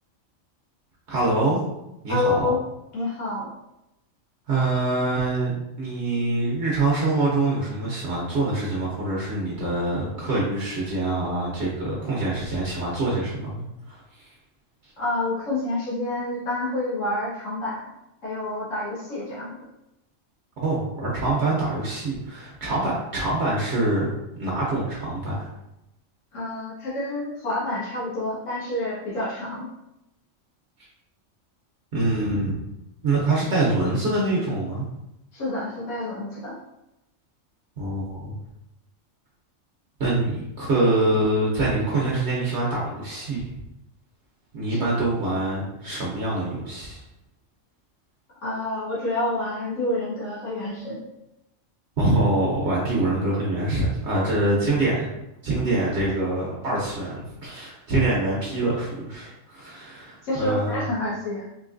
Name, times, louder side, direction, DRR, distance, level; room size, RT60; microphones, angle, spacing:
voice 1, 1.1-1.6 2.0-2.5 4.5-14.3 20.6-24.1 24.4-25.5 31.9-32.6 33.0-34.9 37.8-38.3 40.0-43.4 44.5-47.0 52.0-55.1 55.4-60.8, right 2 dB, 65° right, -4 dB, 1.0 m, -25 dB
voice 2, 2.1-2.6 2.9-3.5 15.0-17.8 18.2-19.5 26.3-29.7 35.3-36.6 44.7-45.0 48.4-51.0 60.2-61.5, left 2 dB, 70° left, -9 dB, 1.5 m, -28 dB
3.8 x 2.7 x 2.5 m, 0.88 s
omnidirectional pair, 1.3 m